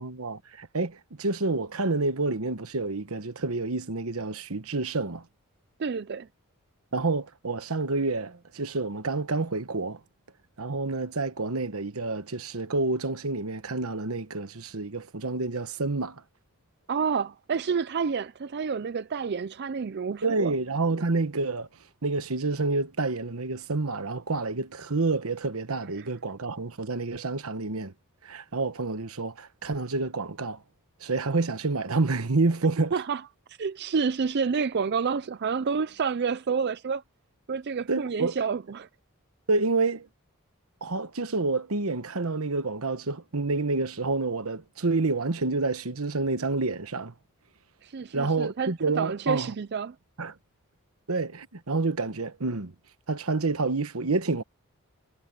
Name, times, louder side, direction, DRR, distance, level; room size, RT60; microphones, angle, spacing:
voice 1, 0.0-5.2 6.9-10.0 10.6-16.2 20.2-21.7 22.0-27.9 28.2-30.6 31.0-33.0 37.9-38.4 39.5-40.1 40.8-47.1 48.1-49.5 50.2-50.3 51.1-52.7 53.1-54.4, right 3 dB, 75° right, 1.2 m, -28 dB
voice 2, 5.8-6.3 16.9-20.5 26.0-26.1 32.9-33.2 33.5-37.0 37.5-38.9 47.8-50.0, right 5 dB, 50° right, 0.4 m, -29 dB
head